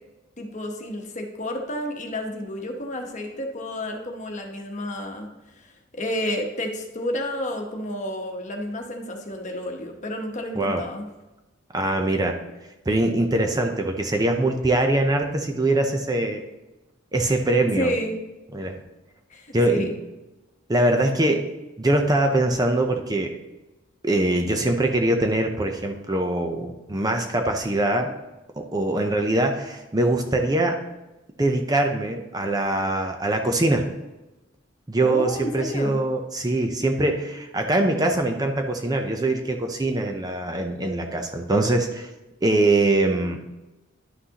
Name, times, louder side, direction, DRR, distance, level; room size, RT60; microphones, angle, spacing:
voice 1, 0.4-5.3 5.6-11.1 17.8-18.2 19.3-19.9 35.0-36.0, left 1 dB, 40° left, 3 dB, 1.1 m, -30 dB
voice 2, 11.7-12.4 12.9-16.4 17.1-17.9 18.5-18.8 19.5-19.9 20.7-21.5 21.8-23.4 24.0-28.1 28.6-30.8 31.4-33.9 34.9-42.1 42.4-43.4, right 2 dB, 20° right, 4 dB, 0.6 m, -23 dB
11.0 x 5.9 x 2.9 m, 1.1 s
head